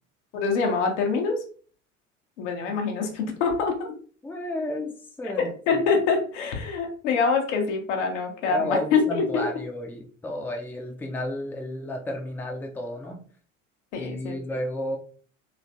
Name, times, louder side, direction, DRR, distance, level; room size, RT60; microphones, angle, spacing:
voice 1, 0.3-1.4 2.4-3.9 5.7-9.4 13.9-14.4, left 5 dB, 60° left, 3 dB, 0.9 m, -25 dB
voice 2, 4.2-5.8 8.5-13.2 13.9-15.0, left 1 dB, 5° left, 1 dB, 0.6 m, -32 dB
3.2 x 3.1 x 2.6 m, 0.44 s
figure-of-eight pair, 65°, 39 cm